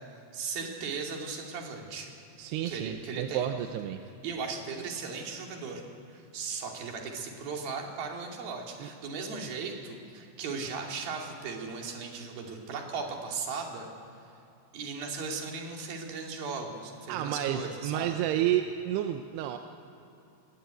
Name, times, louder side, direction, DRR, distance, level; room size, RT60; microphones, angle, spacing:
voice 1, 0.3-2.1 2.6-3.5 4.2-5.8 6.1-13.9 14.7-18.1, right 5 dB, 55° right, 1 dB, 4.2 m, -37 dB
voice 2, 2.4-4.0 8.8-8.9 17.1-19.6, right 12 dB, 80° right, 6 dB, 2.6 m, -30 dB
21.5 x 18.5 x 9.2 m, 2.8 s
omnidirectional pair, 5.3 m